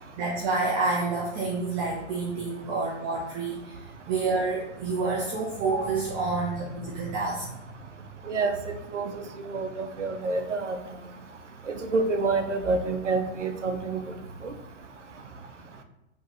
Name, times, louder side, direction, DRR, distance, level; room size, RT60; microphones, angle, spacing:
voice 1, 0.2-7.6, right 3 dB, 30° right, -2 dB, 0.7 m, -28 dB
voice 2, 8.3-10.8 11.7-14.1 14.4-14.5, right 3 dB, 85° right, 7 dB, 0.7 m, -28 dB
4.3 x 3.2 x 3.0 m, 0.95 s
figure-of-eight pair, 105°, 35 cm